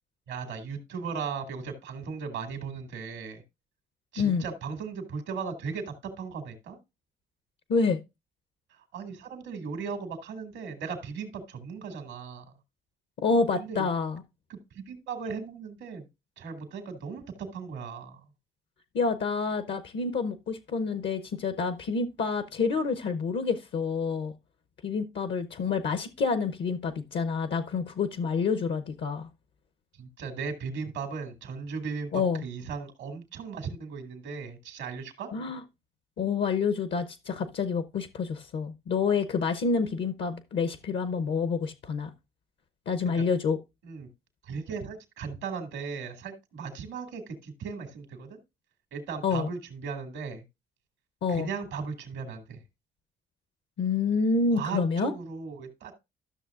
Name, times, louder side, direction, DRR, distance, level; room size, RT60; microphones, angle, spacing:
voice 1, 0.3-3.4 4.1-6.8 8.7-12.4 13.6-13.9 14.5-16.0 16.4-18.2 30.0-35.3 43.1-43.2 43.8-44.1 44.4-48.4 48.9-50.4 51.3-52.6 54.5-55.9, right 5 dB, 90° right, 2.0 m, -37 dB
voice 2, 13.2-14.2 18.9-24.3 24.8-29.3 32.1-32.4 35.3-35.6 36.2-42.1 42.9-43.6 49.2-49.5 51.2-51.5 53.8-55.1, left 5 dB, 65° left, 0.8 m, -28 dB
13.0 x 6.3 x 2.4 m
supercardioid pair, 70°, 20 cm